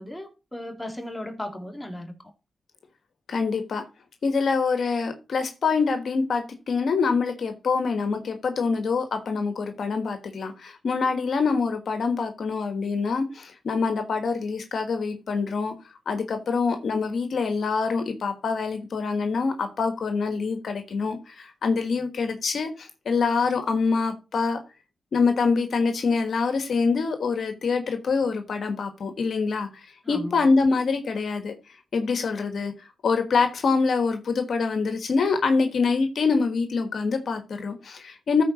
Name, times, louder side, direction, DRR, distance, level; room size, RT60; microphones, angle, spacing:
voice 1, 0.0-2.2 30.0-30.4, left 1 dB, 15° left, 2.5 m, -36 dB
voice 2, 3.3-3.8 4.2-15.7 16.1-24.6 25.1-31.5 31.9-38.4, left 4 dB, 70° left, 1.3 m, -25 dB
13.5 x 4.6 x 4.0 m
cardioid pair, 60°, 0 cm